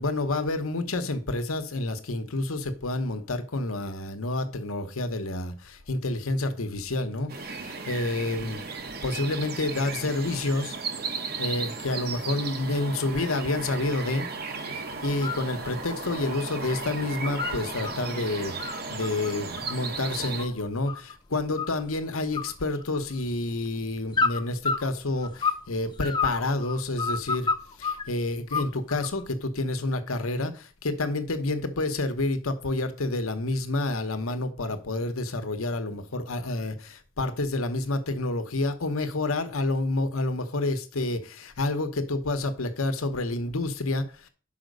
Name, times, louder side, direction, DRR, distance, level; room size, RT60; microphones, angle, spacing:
voice 1, 0.0-8.7 9.0-10.8 11.4-14.3 14.7-27.5 27.8-44.3, left 2 dB, 80° left, 1.0 m, -29 dB
sound 1, 7.3-20.5, right 4 dB, 45° right, 1.0 m, -35 dB
sound 2, 15.0-15.4 15.8-16.7 17.0-17.9 18.4-21.1 21.6-22.0 22.3-23.3 24.1-25.7 26.0-28.0 28.5-29.2, left 4 dB, 20° left, 0.7 m, -30 dB
5.7 x 5.2 x 6.5 m
head